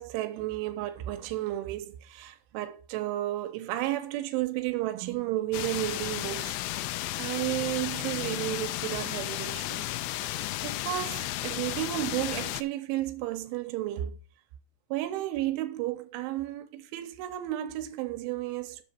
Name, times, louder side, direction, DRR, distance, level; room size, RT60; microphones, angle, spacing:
voice 1, 0.0-6.8 7.2-9.9 10.2-14.2 14.9-18.8, right 15 dB, 90° right, 3.3 m, -33 dB
sound 1, 5.5-12.6, left 15 dB, 85° left, 2.9 m, -33 dB
10.5 x 6.3 x 4.4 m
omnidirectional pair, 5.4 m